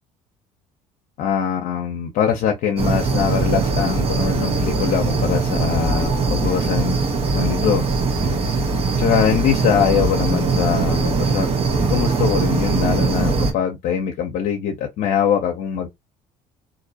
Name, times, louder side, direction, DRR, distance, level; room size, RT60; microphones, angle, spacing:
voice 1, 1.2-7.0 7.3-7.8 8.2-8.3 9.0-11.5 11.7-15.9, left 8 dB, 70° left, 0.6 m, -22 dB
sound 1, 2.8-13.5, right 4 dB, 40° right, 1.0 m, -21 dB
2.5 x 2.0 x 2.7 m
supercardioid pair, 90°, 15 cm